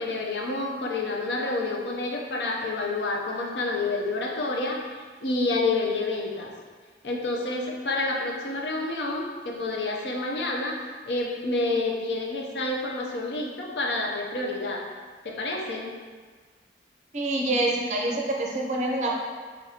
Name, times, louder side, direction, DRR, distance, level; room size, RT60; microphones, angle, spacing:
voice 1, 0.0-6.5 7.0-14.8 15.2-15.9, left 2 dB, 75° left, 0 dB, 0.5 m, -29 dB
voice 2, 17.1-19.2, right 2 dB, 40° right, -1 dB, 0.5 m, -26 dB
3.8 x 3.4 x 2.8 m, 1.5 s
head